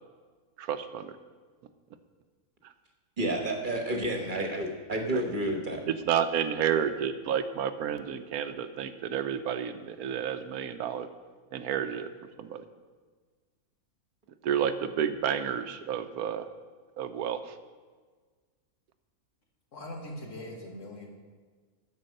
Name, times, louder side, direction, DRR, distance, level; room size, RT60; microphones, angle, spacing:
voice 1, 0.6-1.1 2.6-2.7 5.1-5.2 6.1-11.1 11.5-12.1 12.4-12.6 14.4-16.5 17.0-17.6, right 8 dB, 85° right, 10 dB, 1.1 m, -30 dB
voice 2, 3.2-5.8, right 1 dB, 35° right, 3 dB, 1.3 m, -30 dB
voice 3, 19.7-21.1, left 1 dB, 55° left, 1 dB, 1.8 m, -41 dB
9.7 x 6.8 x 6.5 m, 1.5 s
omnidirectional pair, 1.5 m